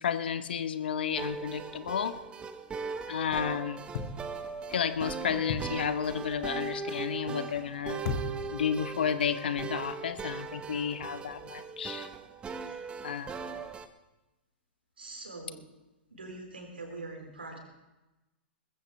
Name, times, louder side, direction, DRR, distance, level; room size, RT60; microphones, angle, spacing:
voice 1, 0.0-2.1 3.1-3.8 4.7-8.0 8.5-12.1 13.0-13.4, left 8 dB, 70° left, 12 dB, 1.0 m, -32 dB
sound 1, 1.2-13.9, right 5 dB, 20° right, 1.0 m, -39 dB
sound 2, 3.9-4.5 5.5-5.9 8.0-8.7 9.5-9.6, left 5 dB, 50° left, 1.6 m, -35 dB
voice 2, 15.0-15.6 16.1-17.6, right 2 dB, 80° right, 2 dB, 4.1 m, -43 dB
20.5 x 15.0 x 3.2 m, 1.0 s
figure-of-eight pair, 105°, 6 cm